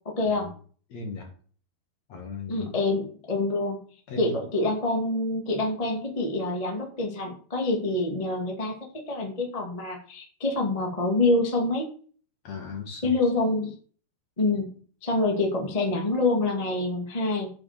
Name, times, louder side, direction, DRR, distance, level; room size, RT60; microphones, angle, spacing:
voice 1, 0.2-0.5 2.5-3.8 4.2-11.8 13.0-13.7 14.4-17.5, left 2 dB, 20° left, 1 dB, 0.9 m, -26 dB
voice 2, 0.9-1.3 2.1-2.7 4.1-4.4 12.4-13.3, left 4 dB, 50° left, 3 dB, 2.6 m, -38 dB
8.6 x 6.3 x 6.6 m, 0.44 s
omnidirectional pair, 4.8 m